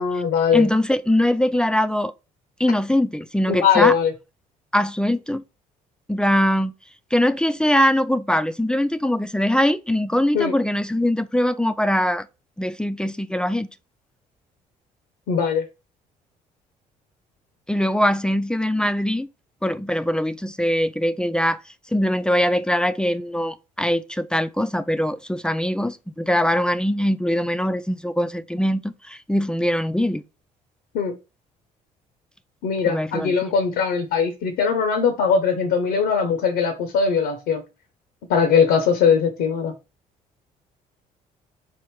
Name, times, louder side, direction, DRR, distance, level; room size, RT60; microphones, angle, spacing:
voice 1, 0.0-0.7 3.5-4.1 10.3-10.5 15.3-15.6 30.9-31.1 32.6-37.6 38.3-39.7, left 6 dB, 75° left, 0.7 m, -20 dB
voice 2, 0.5-2.1 2.6-3.9 4.7-5.4 6.1-6.7 7.1-12.3 12.6-13.7 17.7-19.3 19.6-21.6 21.9-30.2 32.8-33.3, left 1 dB, 5° left, 0.3 m, -22 dB
3.5 x 2.5 x 4.5 m
supercardioid pair, 60°, 18 cm